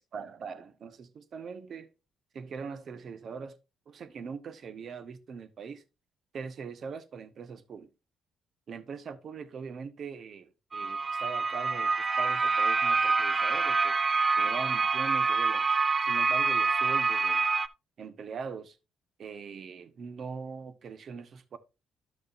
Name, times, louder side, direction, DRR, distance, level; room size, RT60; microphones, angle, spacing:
voice 1, 0.0-1.9 2.3-3.6 3.9-5.8 6.3-7.9 8.7-14.0 14.3-15.6 16.0-17.5 18.0-18.8 19.2-21.6, right 5 dB, 55° right, 1.1 m, -41 dB
sound 1, 10.7-17.7, right 4 dB, 30° right, 0.6 m, -26 dB
12.0 x 6.5 x 2.6 m
cardioid pair, 90°, 0 cm